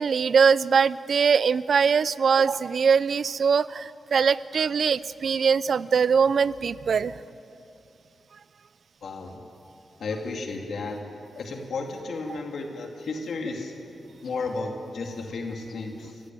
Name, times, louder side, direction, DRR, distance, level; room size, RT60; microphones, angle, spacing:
voice 1, 0.0-7.1, right 6 dB, 55° right, 17 dB, 0.5 m, -22 dB
voice 2, 9.0-9.4 10.0-11.0 11.4-13.7 14.2-16.2, left 3 dB, 70° left, 2 dB, 2.5 m, -33 dB
29.5 x 15.5 x 9.3 m, 2.7 s
wide cardioid pair, 155°, 0 cm